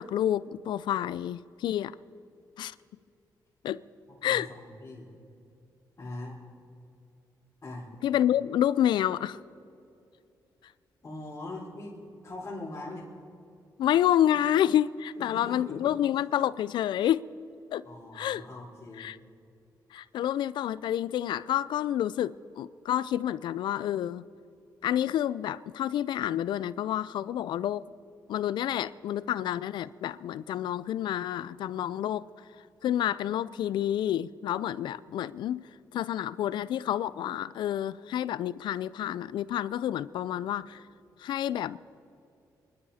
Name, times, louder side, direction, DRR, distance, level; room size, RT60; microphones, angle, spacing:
voice 1, 0.0-1.9 2.6-2.7 3.6-3.8 4.2-4.5 8.0-9.4 13.8-17.2 17.7-17.8 18.1-18.4 19.0-19.2 19.9-24.2 24.8-27.8 28.3-32.2 32.8-35.6 35.9-40.8 41.2-41.8, left 11 dB, 85° left, 0.4 m, -29 dB
voice 2, 4.3-5.1 6.0-6.4 7.6-7.9 11.0-13.1 15.2-15.8 17.8-19.1, left 2 dB, 40° left, 4.1 m, -41 dB
26.0 x 11.5 x 4.2 m
cardioid pair, 90°, 8 cm